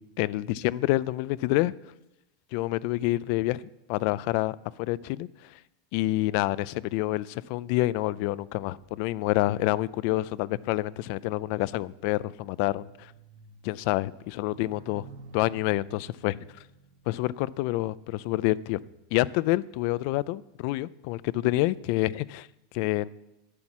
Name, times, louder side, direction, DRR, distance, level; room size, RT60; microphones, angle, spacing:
voice 1, 0.2-1.7 2.5-3.6 3.9-5.3 5.9-13.1 13.6-15.1 15.3-16.5 17.1-18.8 19.1-22.5 22.7-23.1, left 17 dB, 45° left, 19 dB, 0.4 m, -27 dB
sound 1, 8.4-20.0 20.7-21.0, right 3 dB, 80° right, 1.7 m, -54 dB
11.5 x 7.2 x 9.7 m, 0.94 s
supercardioid pair, 175°, 0 cm